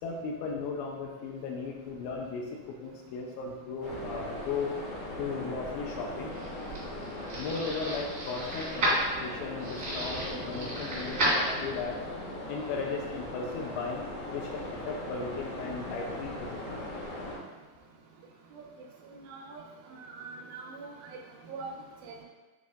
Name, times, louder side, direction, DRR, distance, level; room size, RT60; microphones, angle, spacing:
voice 1, 0.0-4.8 5.2-6.4 7.4-12.0 12.5-14.1 14.3-16.8, left 4 dB, 85° left, 0 dB, 2.9 m, -36 dB
sound 1, 3.8-17.4, left 1 dB, 70° left, 0.8 m, -39 dB
sound 2, 6.0-12.0, right 1 dB, 50° right, 1.1 m, -32 dB
voice 2, 19.1-19.6 19.9-20.9 21.5-21.7 22.0-22.2, right 4 dB, 80° right, -2 dB, 2.7 m, -43 dB
7.9 x 3.7 x 3.6 m, 1.2 s
omnidirectional pair, 5.0 m